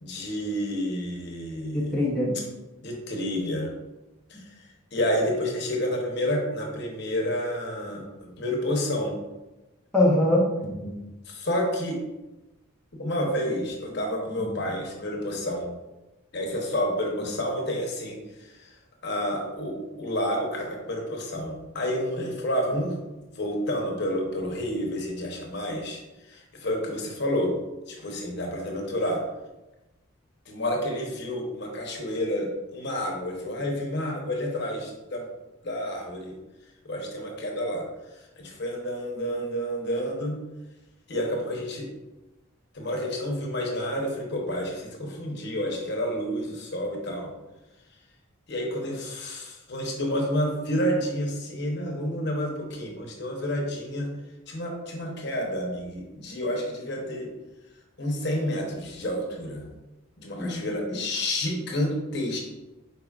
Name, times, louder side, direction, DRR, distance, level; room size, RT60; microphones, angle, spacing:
voice 1, 0.0-2.0 2.8-3.7 4.3-4.4 4.9-9.2 11.3-12.0 12.9-15.7 16.3-18.7 19.0-23.0 23.3-26.0 26.3-27.5 27.9-29.2 30.5-35.3 35.6-36.4 36.8-37.9 38.4-40.4 41.1-41.9 42.7-47.3 48.5-54.1 54.5-57.3 58.0-59.7 60.2-62.4, equal, 50° left, 0 dB, 0.9 m, -29 dB
voice 2, 1.7-2.4 9.9-10.9 14.4-14.5 60.4-60.6 60.9-61.0, left 1 dB, 5° left, -6 dB, 0.7 m, -23 dB
4.8 x 4.6 x 2.4 m, 1.0 s
head